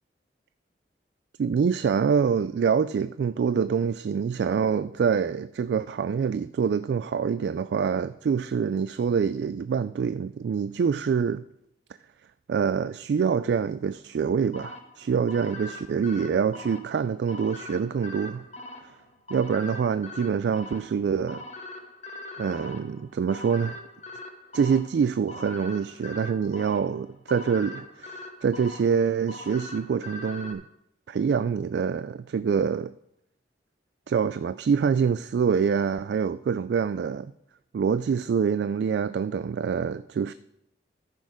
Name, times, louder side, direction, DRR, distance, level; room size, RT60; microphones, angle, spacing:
voice 1, 1.4-11.4 12.5-18.4 18.8-18.9 19.3-21.4 22.4-23.8 24.5-30.6 31.1-32.9 34.1-37.3 37.7-40.3, right 6 dB, 70° right, 0.3 m, -25 dB
sound 1, 14.5-30.5, left 2 dB, 40° left, 1.2 m, -42 dB
14.0 x 6.4 x 4.9 m
head